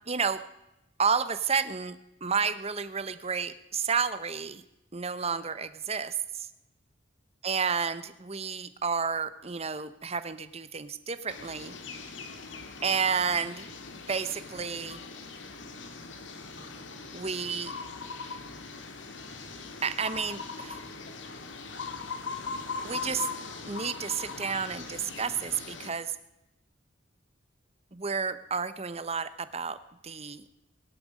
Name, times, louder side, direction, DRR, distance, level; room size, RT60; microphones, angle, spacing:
voice 1, 0.1-0.4 1.0-4.6 4.9-6.5 7.4-11.7 12.8-13.7 14.1-15.0 17.1-17.7 19.8-20.8 22.8-23.3 23.7-26.1 27.9-29.8 30.0-30.4, right 6 dB, 35° right, 13 dB, 0.9 m, -31 dB
sound 1, 11.3-25.9, left 4 dB, 75° left, 1.9 m, -40 dB
22.5 x 11.5 x 5.0 m, 0.90 s
head